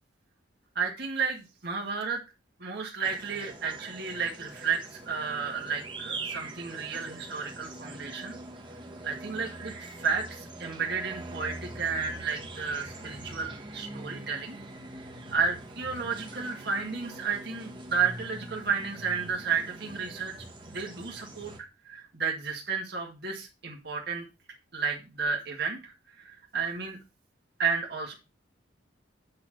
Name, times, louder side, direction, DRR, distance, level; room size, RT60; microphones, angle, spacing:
voice 1, 0.8-2.2 2.6-8.4 9.0-14.6 15.3-20.3 20.7-21.5 21.9-24.3 24.7-27.0 27.6-28.1, right 5 dB, 55° right, 0 dB, 1.7 m, -32 dB
sound 1, 3.0-21.6, right 2 dB, 25° right, 1.5 m, -43 dB
8.5 x 4.0 x 6.1 m, 0.28 s
head